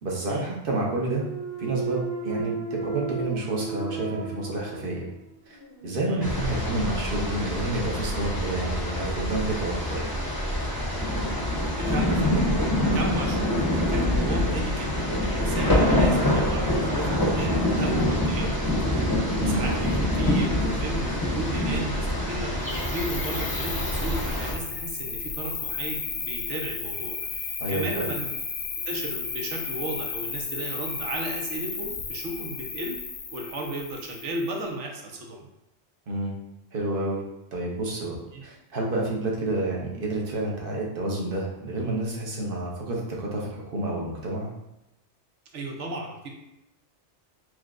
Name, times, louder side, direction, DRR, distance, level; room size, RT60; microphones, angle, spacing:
voice 1, 0.0-1.3 1.6-5.1 5.5-5.6 5.8-10.1 19.4-19.6 27.6-28.0 36.1-36.3 36.7-37.2 37.5-44.5, right 2 dB, 55° right, -2 dB, 1.0 m, -29 dB
Thump thud, 1.0-5.1 5.5-10.2, right 4 dB, 25° right, 0.8 m, -36 dB
sound 1, 6.2-24.5, left 1 dB, 25° left, 0.7 m, -25 dB
voice 2, 11.8-12.4 12.9-19.0 19.5-28.3 28.9-33.0 33.3-35.5 38.3-38.4 45.5-46.3, right 2 dB, 85° right, 1 dB, 1.0 m, -34 dB
Cricket, 22.7-34.6, left 5 dB, 65° left, 0.8 m, -34 dB
6.0 x 2.1 x 2.4 m, 0.92 s
omnidirectional pair, 1.2 m